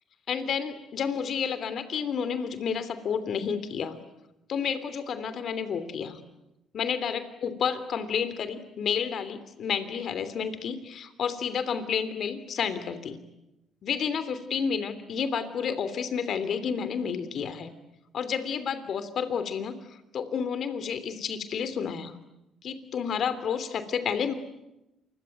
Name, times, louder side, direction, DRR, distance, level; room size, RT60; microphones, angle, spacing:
voice 1, 0.3-4.0 4.5-6.2 6.7-13.2 13.8-17.7 18.1-19.8 20.1-22.2 22.6-24.3, left 7 dB, 60° left, 13 dB, 3.1 m, -30 dB
27.5 x 22.0 x 9.3 m, 0.92 s
supercardioid pair, 60°, 0 cm